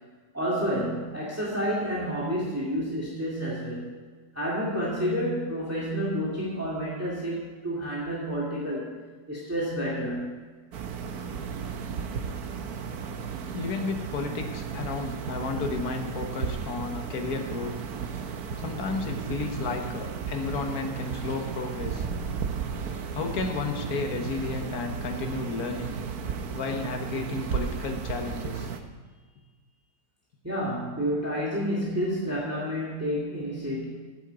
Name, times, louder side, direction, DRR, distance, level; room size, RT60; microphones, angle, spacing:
voice 1, 0.3-3.9 4.3-8.9 9.3-10.3 30.4-33.9, equal, 10° right, -6 dB, 2.1 m, -29 dB
sound 1, 10.7-28.8, right 6 dB, 65° right, 1.3 m, -34 dB
voice 2, 13.5-17.8 18.6-22.1 23.1-25.9 26.5-28.7, left 4 dB, 65° left, 4 dB, 1.6 m, -32 dB
8.9 x 7.7 x 8.1 m, 1.4 s
omnidirectional pair, 1.8 m